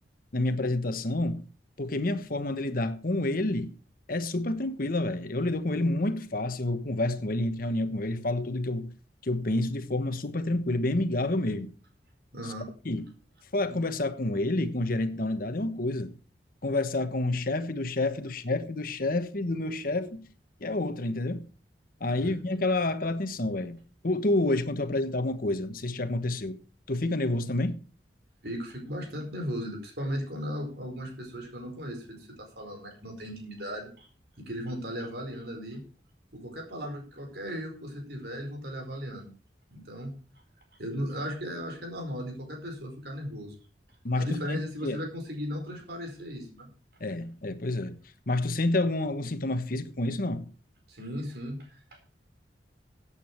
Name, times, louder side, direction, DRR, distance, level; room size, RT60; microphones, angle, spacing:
voice 1, 0.3-1.4 1.8-3.7 4.1-8.9 9.2-11.7 12.8-13.1 13.5-16.1 16.6-20.2 20.6-21.5 22.0-23.8 24.0-26.6 26.9-27.8 44.0-45.0 47.0-48.0 48.3-50.5, left 2 dB, 50° left, 1.2 m, -29 dB
voice 2, 12.3-12.7 22.2-22.3 28.4-34.1 34.4-35.8 36.3-39.3 39.7-40.2 40.8-43.5 44.2-46.7 50.9-51.8, equal, 60° right, 4.6 m, -36 dB
14.5 x 8.6 x 4.5 m
head